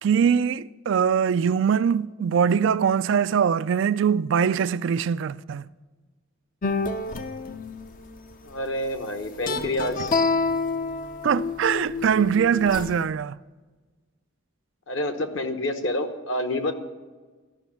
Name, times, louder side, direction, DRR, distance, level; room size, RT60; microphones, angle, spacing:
voice 1, 0.0-5.7 11.2-13.4, right 7 dB, 60° right, 0.3 m, -22 dB
sound 1, 6.6-8.3 9.4-13.0, left 4 dB, 40° left, 0.5 m, -28 dB
voice 2, 8.4-10.1 14.9-16.7, left 1 dB, 55° left, 1.1 m, -28 dB
13.5 x 6.1 x 7.0 m
head